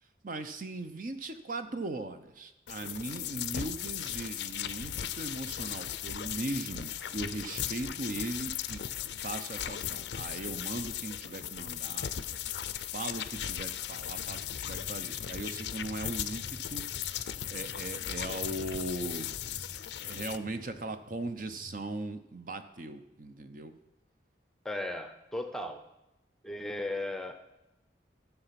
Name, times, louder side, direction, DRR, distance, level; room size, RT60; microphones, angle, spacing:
voice 1, 0.2-8.8 9.2-12.1 12.9-16.9 17.5-19.3 20.0-23.7, right 2 dB, 50° right, 9 dB, 0.8 m, -39 dB
sound 1, 2.7-20.4, left 10 dB, 85° left, 0.5 m, -37 dB
sound 2, 14.3-21.8, equal, 80° right, 3.3 m, -52 dB
voice 2, 24.6-25.8 26.4-27.4, left 1 dB, 5° left, 7 dB, 0.7 m, -36 dB
13.5 x 7.0 x 5.8 m, 0.93 s
head